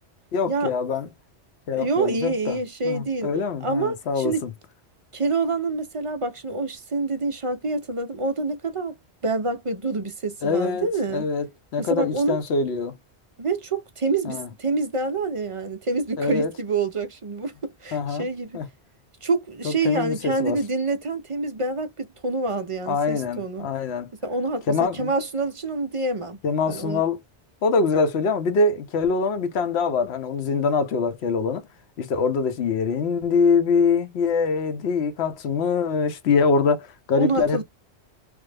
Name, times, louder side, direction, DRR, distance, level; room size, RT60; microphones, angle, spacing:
voice 1, 0.3-1.1 1.7-2.6 2.8-4.5 10.4-11.5 11.7-12.9 14.2-14.5 16.2-16.5 17.9-18.3 18.5-18.7 19.6-20.6 22.9-24.1 24.7-25.1 26.4-27.2 27.6-31.6 32.0-37.6, left 4 dB, 70° left, 0.9 m, -24 dB
voice 2, 1.7-3.3 3.6-4.4 5.1-8.9 9.2-11.2 11.8-12.4 13.4-17.5 17.8-18.6 19.2-23.7 24.2-26.4 26.7-27.0 37.2-37.6, right 3 dB, 45° right, 0.4 m, -26 dB
3.3 x 2.0 x 3.3 m
omnidirectional pair, 1.1 m